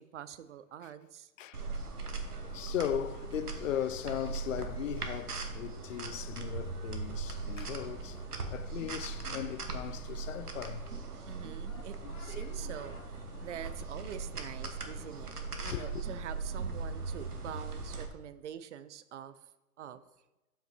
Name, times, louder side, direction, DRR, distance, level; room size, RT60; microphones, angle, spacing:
voice 1, 0.0-1.3 11.3-15.3 15.6-19.5 19.8-20.0, right 9 dB, 55° right, 0.6 m, -45 dB
sound 1, 1.5-18.1, right 4 dB, 85° right, 1.3 m, -39 dB
voice 2, 2.4-8.2 8.5-10.9 11.7-12.7 13.3-13.5 15.6-16.0, left 10 dB, 60° left, 0.5 m, -38 dB
12.5 x 5.8 x 2.8 m
figure-of-eight pair, 115°, 45 cm